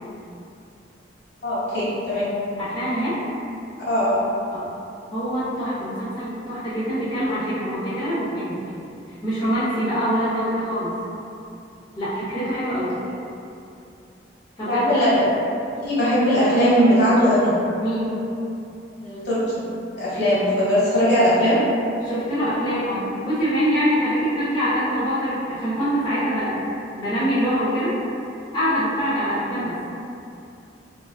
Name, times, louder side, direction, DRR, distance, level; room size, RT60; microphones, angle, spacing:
voice 1, 1.4-2.3 3.9-4.3 14.7-15.3 15.8-17.6 19.0-19.6 19.9-21.6 29.6-29.7, equal, 65° left, -9 dB, 1.2 m, -19 dB
voice 2, 2.6-3.2 4.5-4.6 5.1-8.6 9.1-11.0 12.0-13.0 14.6-14.9 17.8-18.2 22.0-26.6 26.9-28.0 28.5-29.8, equal, 25° left, -12 dB, 0.6 m, -24 dB
3.7 x 2.4 x 2.3 m, 2.7 s
head